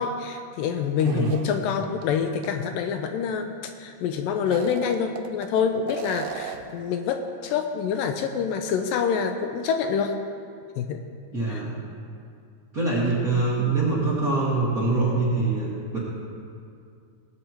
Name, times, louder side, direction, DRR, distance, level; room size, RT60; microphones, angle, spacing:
voice 1, 0.0-3.5 3.8-10.2 10.8-11.0 11.5-11.6, left 6 dB, 80° left, 6 dB, 2.2 m, -26 dB
voice 2, 1.0-1.3 11.3-11.7 12.7-16.0, right 3 dB, 35° right, -7 dB, 1.6 m, -24 dB
sound 1, 1.0-2.1 2.4-2.5 4.4-5.5 5.9-6.8, right 9 dB, 85° right, 2.6 m, -38 dB
19.5 x 8.6 x 4.4 m, 2.3 s
omnidirectional pair, 4.2 m